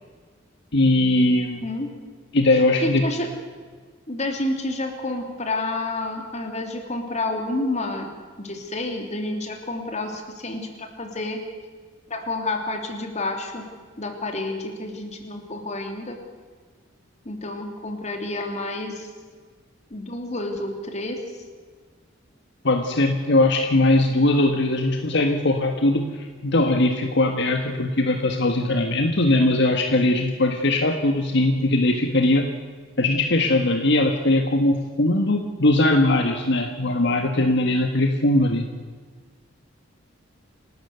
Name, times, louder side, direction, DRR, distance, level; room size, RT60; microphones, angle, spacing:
voice 1, 0.7-1.6 2.3-3.0 22.6-32.5 33.0-38.7, left 2 dB, 65° left, 4 dB, 1.6 m, -20 dB
voice 2, 1.6-1.9 2.8-3.3 4.1-8.1 8.4-11.4 12.1-13.6 14.0-16.2 17.2-19.1 19.9-21.2, left 2 dB, 35° left, 4 dB, 3.1 m, -29 dB
28.5 x 13.0 x 8.0 m, 1.5 s
head